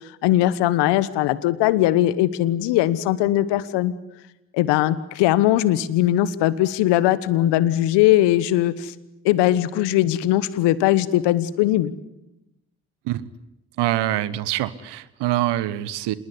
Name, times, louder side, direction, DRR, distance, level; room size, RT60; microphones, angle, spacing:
voice 1, 0.2-3.9 4.5-8.9 9.2-11.9, left 14 dB, 75° left, 17 dB, 1.3 m, -20 dB
voice 2, 13.8-16.2, right 14 dB, 75° right, 18 dB, 1.3 m, -24 dB
26.5 x 21.0 x 9.9 m, 0.91 s
hypercardioid pair, 45°, 42 cm